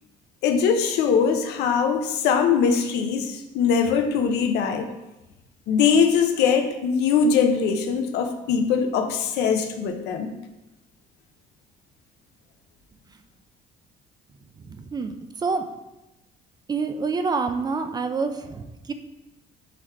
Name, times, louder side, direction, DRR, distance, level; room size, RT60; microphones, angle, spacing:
voice 1, 0.4-4.9 5.7-10.3, left 6 dB, 85° left, 6 dB, 0.6 m, -21 dB
voice 2, 14.7-15.7 16.7-18.9, right 4 dB, 25° right, 7 dB, 0.4 m, -27 dB
3.9 x 3.1 x 4.3 m, 0.98 s
cardioid pair, 110°, 17 cm